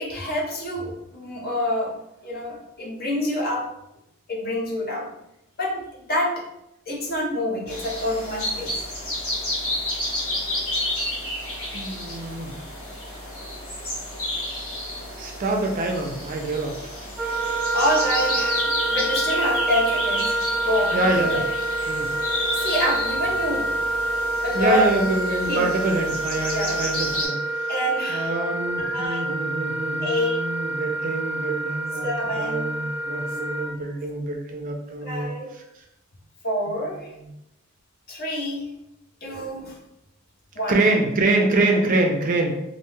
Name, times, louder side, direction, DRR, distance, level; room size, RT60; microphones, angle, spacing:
voice 1, 0.0-1.9 2.2-3.7 4.3-5.1 5.6-5.8 6.1-6.4 6.9-8.8 17.7-18.6 18.9-21.4 22.6-23.7 24.4-24.9 25.5-25.7 26.5-26.8 27.7-28.3 28.8-29.3 30.0-30.4 32.0-32.7 35.0-35.5 36.4-37.1 38.1-38.7 39.2-39.8 40.6-40.8, left 1 dB, 45° left, -2 dB, 0.7 m, -26 dB
sound 1, 7.7-27.3, left 1 dB, 90° left, 1.3 m, -31 dB
voice 2, 11.7-12.6 15.2-16.8 20.9-21.4 21.9-22.1 24.5-27.7 28.1-35.6 36.8-37.3 40.7-42.6, right 2 dB, 40° right, 2 dB, 0.4 m, -25 dB
Wind instrument woodwind instrument, 17.2-33.8, right 2 dB, 5° right, 0.7 m, -27 dB
2.5 x 2.2 x 3.1 m, 0.83 s
head